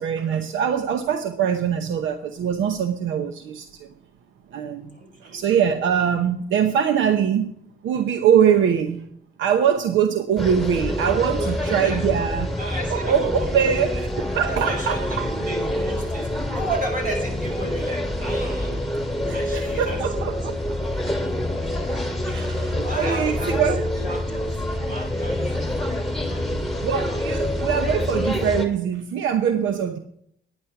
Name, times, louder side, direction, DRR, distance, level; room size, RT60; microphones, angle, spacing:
voice 1, 0.0-3.9 4.5-7.5 7.8-9.1 9.4-12.6 12.9-15.3 19.2-20.7 22.3-23.8 26.5-30.0, right 8 dB, 75° right, 9 dB, 0.9 m, -23 dB
voice 2, 4.9-5.4 11.3-12.1 12.6-13.6 14.3-18.9 19.3-20.0 20.4-20.9 21.6-22.5 22.8-26.8, right 1 dB, 45° right, 2 dB, 5.5 m, -34 dB
sound 1, 10.4-28.7, left 1 dB, ahead, 2.1 m, -26 dB
10.5 x 9.7 x 5.8 m, 0.69 s
cardioid pair, 90°, 20 cm